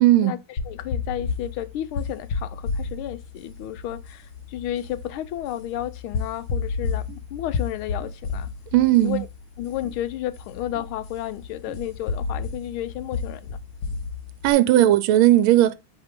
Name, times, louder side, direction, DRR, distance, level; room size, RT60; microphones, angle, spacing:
voice 1, 0.0-0.4 8.7-9.2 14.4-15.7, right 14 dB, 80° right, 1.4 m, -17 dB
sound 1, 0.6-14.5, left 5 dB, 60° left, 1.6 m, -32 dB
voice 2, 0.7-8.5 9.0-9.3 9.6-13.6 14.7-14.9, left 12 dB, 85° left, 1.5 m, -32 dB
sound 2, 7.1-7.2 8.0-8.1 8.9-9.1 9.8-10.0 10.7-10.9 11.7-11.8, right 5 dB, 40° right, 1.3 m, -44 dB
8.1 x 3.6 x 3.6 m
omnidirectional pair, 2.3 m